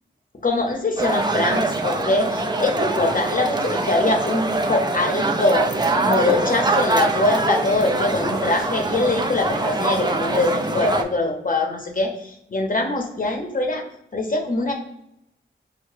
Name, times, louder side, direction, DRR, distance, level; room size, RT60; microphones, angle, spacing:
voice 1, 0.4-5.7 6.0-13.8 14.1-14.7, left 2 dB, 45° left, 2 dB, 0.7 m, -23 dB
sound 1, 1.0-11.0, right 2 dB, 20° right, 0.4 m, -23 dB
4.8 x 2.1 x 2.6 m, 0.78 s
cardioid pair, 55°, 20 cm